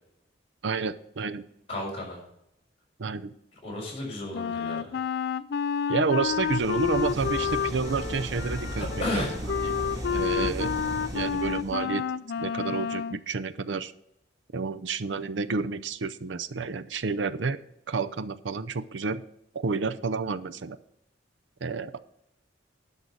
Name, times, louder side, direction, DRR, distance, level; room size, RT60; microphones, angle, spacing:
voice 1, 0.6-1.4 3.0-3.3 5.9-8.9 9.1-9.3 9.6-9.8 10.1-10.7 11.1-12.0 12.4-13.9 14.5-17.6 17.9-19.2 19.5-20.8 21.6-22.0, right 4 dB, 80° right, 12 dB, 0.6 m, -30 dB
voice 2, 1.7-2.2 3.6-5.0 8.7-9.3, left 1 dB, 35° left, -3 dB, 4.6 m, -33 dB
Wind instrument woodwind instrument, 4.3-13.2, left 6 dB, 60° left, 0.4 m, -30 dB
sound 1, 6.1-11.8, equal, 20° right, 3.8 m, -36 dB
12.0 x 5.5 x 6.3 m, 0.80 s
head